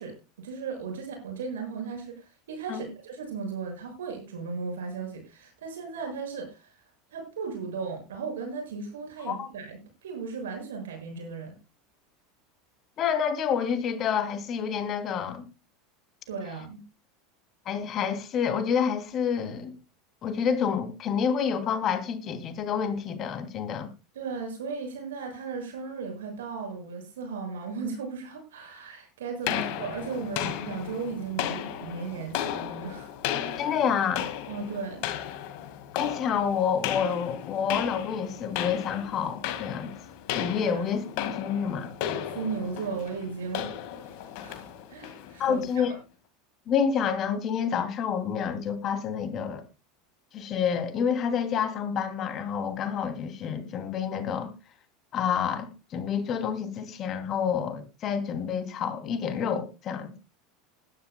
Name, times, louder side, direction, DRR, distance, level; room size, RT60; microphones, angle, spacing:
voice 1, 0.0-6.7 7.1-11.6 16.3-16.8 24.1-33.1 34.5-35.1 40.6-40.8 42.3-43.7 44.1-44.2 44.4-46.0, right 5 dB, 80° right, 6.9 m, -36 dB
voice 2, 13.0-15.5 17.7-19.8 20.2-23.9 33.6-34.3 36.0-39.9 40.3-41.9 45.4-45.9 46.7-49.6 50.3-54.5 55.1-60.2, left 7 dB, 45° left, 2.7 m, -28 dB
sound 1, 29.5-45.8, left 10 dB, 60° left, 2.0 m, -35 dB
20.0 x 12.0 x 2.3 m
hypercardioid pair, 85°, 0 cm